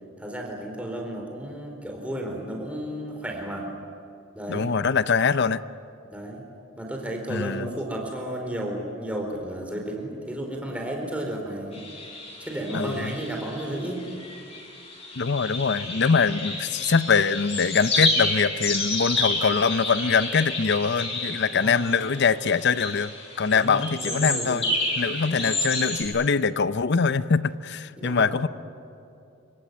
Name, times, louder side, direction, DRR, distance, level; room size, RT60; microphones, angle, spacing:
voice 1, 0.2-3.7 4.3-4.7 6.1-6.4 6.8-11.8 12.4-14.1 15.8-16.4 21.5-21.8 23.5-24.7 25.3-25.6 28.0-28.3, right 1 dB, 5° right, 1 dB, 4.1 m, -33 dB
voice 2, 4.5-5.6 7.3-7.7 12.7-13.1 15.2-23.1 23.4-24.7 25.0-28.5, left 5 dB, 60° left, 14 dB, 0.7 m, -23 dB
sound 1, 11.7-26.0, left 2 dB, 30° left, 6.4 m, -30 dB
25.0 x 24.5 x 9.3 m, 2.7 s
head